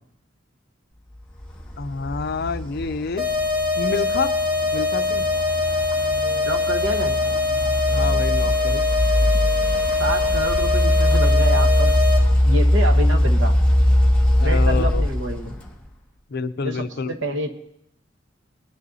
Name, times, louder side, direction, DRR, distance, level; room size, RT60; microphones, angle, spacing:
sound 1, 1.4-15.9, left 1 dB, 5° left, 1.8 m, -21 dB
voice 1, 1.8-3.3 3.7-4.3 4.7-5.3 7.9-8.8 14.4-15.0 16.3-17.1, left 4 dB, 55° left, 11 dB, 0.5 m, -27 dB
sound 2, 3.2-12.2, left 3 dB, 35° right, 3.1 m, -23 dB
voice 2, 6.4-7.1 10.0-12.0 12.4-13.5 14.4-15.5 16.6-17.5, right 1 dB, 75° right, 4 dB, 1.3 m, -27 dB
20.0 x 10.5 x 2.7 m, 0.76 s
head